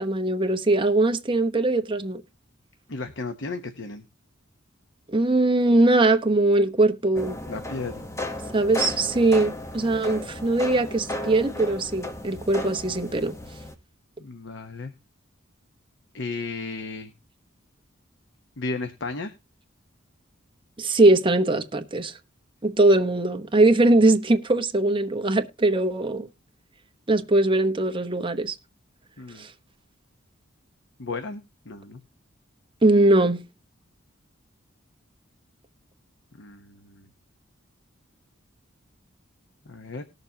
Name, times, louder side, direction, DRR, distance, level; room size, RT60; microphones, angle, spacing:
voice 1, 0.0-2.2 5.1-7.4 8.5-13.4 20.8-22.2 22.6-26.3 27.1-28.6 29.4-29.5 32.8-33.4, right 2 dB, 25° right, 1.0 m, -21 dB
voice 2, 2.9-4.0 7.5-8.0 14.2-14.9 16.1-17.1 18.6-19.3 29.2-29.5 31.0-32.0 36.4-37.1 39.7-40.0, left 3 dB, 60° left, 0.9 m, -34 dB
sound 1, 7.1-13.7, left 1 dB, 15° left, 1.0 m, -35 dB
19.5 x 6.7 x 2.8 m
head